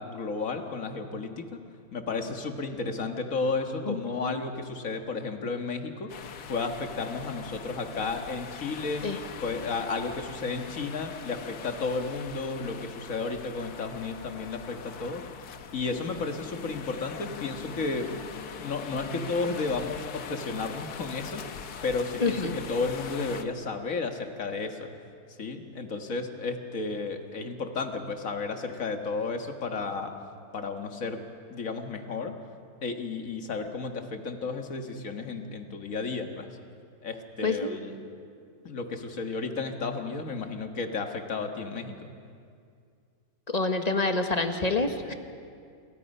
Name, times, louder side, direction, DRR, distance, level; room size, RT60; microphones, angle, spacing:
voice 1, 0.0-9.1 9.4-18.1 18.6-21.4 21.8-24.9 25.4-30.1 30.5-31.2 31.5-32.4 32.8-36.5 37.0-38.0 38.6-42.1, left 4 dB, 60° left, 5 dB, 2.0 m, -33 dB
voice 2, 3.9-4.4 9.0-9.2 22.2-22.6 37.4-37.8 43.5-45.1, left 3 dB, 30° left, 6 dB, 1.3 m, -27 dB
sound 1, 6.1-23.4, left 7 dB, 85° left, 1.5 m, -42 dB
29.0 x 23.0 x 5.5 m, 2.3 s
omnidirectional pair, 1.6 m